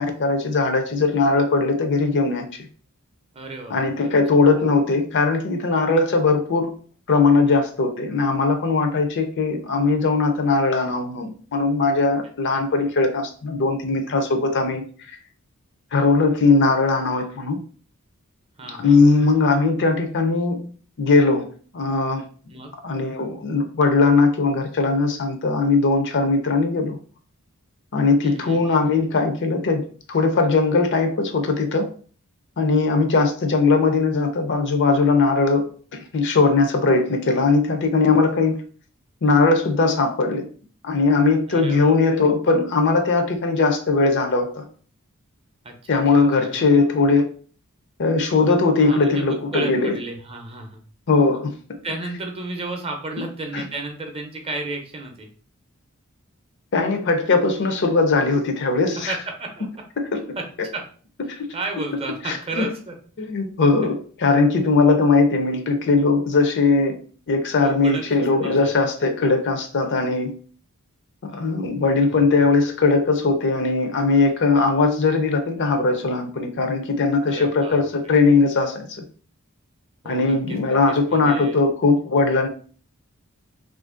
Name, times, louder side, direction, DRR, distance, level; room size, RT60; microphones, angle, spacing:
voice 1, 0.0-2.5 3.7-6.7 7.1-14.9 15.9-17.6 18.7-21.5 21.7-22.2 22.8-27.0 27.9-31.9 32.6-35.6 35.9-38.6 39.2-40.5 40.8-44.6 45.9-47.3 48.0-50.0 51.1-51.5 53.5-53.6 56.7-59.2 60.0-60.2 61.3-61.5 62.2-62.7 63.2-66.9 67.3-70.4 71.2-79.0 80.1-82.5, left 3 dB, 55° left, 6 dB, 0.5 m, -19 dB
voice 2, 3.3-3.9 18.6-19.0 22.5-22.7 28.2-28.6 41.5-42.0 45.6-46.9 48.8-50.8 51.8-55.3 59.1-59.7 60.4-60.5 60.7-60.8 61.2-62.9 67.6-68.0 68.4-68.7 72.1-72.2 77.3-77.9 80.0-80.6 80.9-81.6, right 2 dB, 25° right, 3 dB, 0.6 m, -33 dB
2.7 x 2.5 x 3.7 m, 0.43 s
head